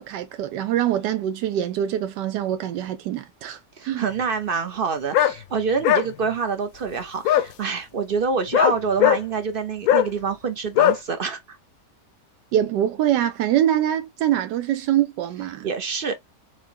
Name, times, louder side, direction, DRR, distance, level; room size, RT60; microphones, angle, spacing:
voice 1, 0.0-4.1 12.5-15.7, right 11 dB, 85° right, 1.2 m, -24 dB
voice 2, 3.8-11.6 15.6-16.2, right 5 dB, 55° right, 0.6 m, -26 dB
sound 1, 5.1-5.3 5.8-6.1 7.2-7.4 8.5-9.2 9.9-10.1 10.8-11.0, left 11 dB, 70° left, 1.0 m, -17 dB
4.6 x 3.8 x 2.8 m
omnidirectional pair, 1.8 m